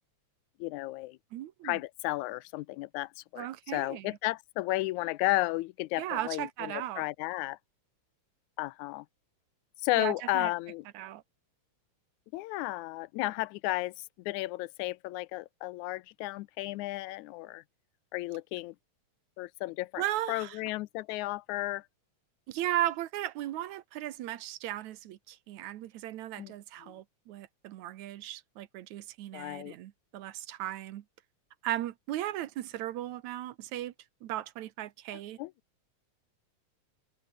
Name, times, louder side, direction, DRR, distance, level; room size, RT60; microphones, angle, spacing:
voice 1, 0.6-1.2 1.6-7.6 8.6-9.1 9.8-10.8 12.3-17.6 18.1-18.7 19.4-20.0 20.3-21.9 26.4-26.5 26.8-26.9 29.3-29.7 35.4-35.5, left 19 dB, 85° left, 2.0 m, -33 dB
voice 2, 1.3-1.8 3.4-4.2 6.0-7.0 10.0-10.5 10.9-11.2 20.0-20.6 22.5-31.0 31.6-33.9 34.2-35.4, right 13 dB, 75° right, 2.3 m, -36 dB
omnidirectional pair, 3.4 m